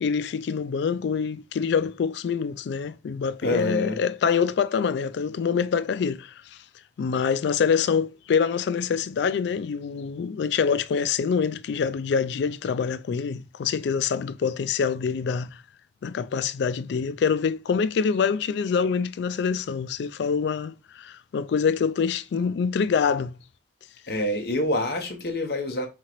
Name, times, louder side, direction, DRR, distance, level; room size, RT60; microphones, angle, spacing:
voice 1, 0.0-6.3 7.0-15.6 16.0-23.3, left 6 dB, 70° left, 0.3 m, -25 dB
voice 2, 3.4-4.0 24.1-25.9, left 1 dB, 55° left, 1.0 m, -26 dB
4.5 x 3.7 x 3.0 m
head